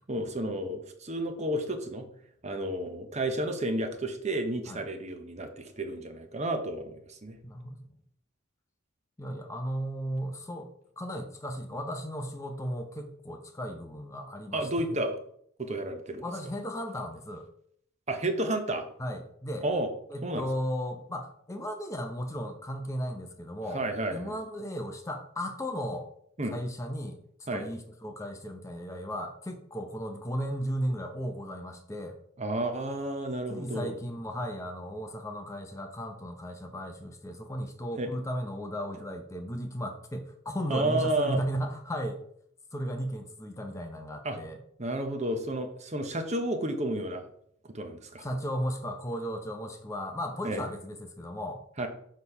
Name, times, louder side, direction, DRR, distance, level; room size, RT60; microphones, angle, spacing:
voice 1, 0.1-2.0 2.4-7.4 14.5-15.2 15.6-16.2 18.1-18.9 19.6-19.9 20.2-20.5 23.7-24.3 26.4-26.5 27.5-27.7 32.4-33.9 38.0-38.1 40.7-41.4 44.2-44.4 44.8-47.3 47.7-48.3 50.4-50.6 51.8-51.9, right 1 dB, 35° right, 6 dB, 0.8 m, -31 dB
voice 2, 7.4-7.8 9.2-10.7 11.0-15.0 16.2-17.5 19.0-19.7 20.1-23.8 24.1-26.1 26.5-27.2 27.5-32.2 33.5-42.2 42.7-44.6 48.2-51.6, equal, 15° left, 5 dB, 0.6 m, -35 dB
6.6 x 4.1 x 5.5 m, 0.67 s
head